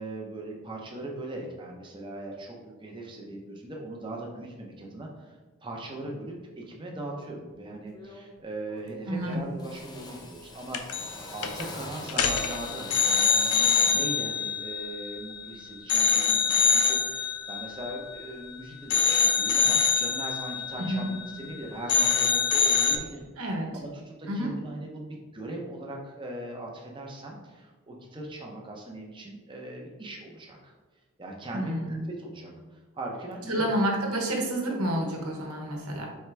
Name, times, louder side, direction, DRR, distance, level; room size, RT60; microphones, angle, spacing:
voice 1, 0.0-5.3 5.6-23.3 23.7-30.7 31.2-31.8 32.2-33.6, right 1 dB, 20° right, -1 dB, 0.7 m, -39 dB
Drill, 7.3-7.5 7.9-8.4 8.7-9.2 9.6-14.2, left 2 dB, 20° left, 0.4 m, -43 dB
voice 2, 9.1-9.4 20.8-21.1 23.4-23.7 24.3-24.5 31.5-32.1 33.5-36.1, right 1 dB, 85° right, 0 dB, 1.0 m, -29 dB
sound 1, 10.7-11.2 11.4-11.6 12.1-15.5 15.9-18.5 18.9-21.6 21.9-23.0, left 6 dB, 85° left, 0.5 m, -25 dB
4.6 x 3.5 x 3.3 m, 1.3 s
head